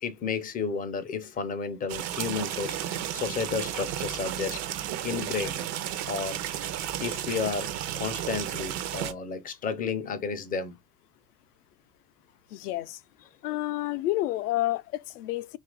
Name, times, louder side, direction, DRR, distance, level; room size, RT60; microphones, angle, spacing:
voice 1, 0.0-4.6 5.0-5.7 6.1-6.7 7.0-10.8, left 5 dB, 20° left, 0.4 m, -32 dB
sound 1, 1.9-9.1, right 11 dB, 40° right, 0.5 m, -33 dB
voice 2, 12.5-13.0 13.4-15.6, left 15 dB, 70° left, 0.6 m, -29 dB
2.8 x 2.5 x 3.7 m
hypercardioid pair, 100°, 47 cm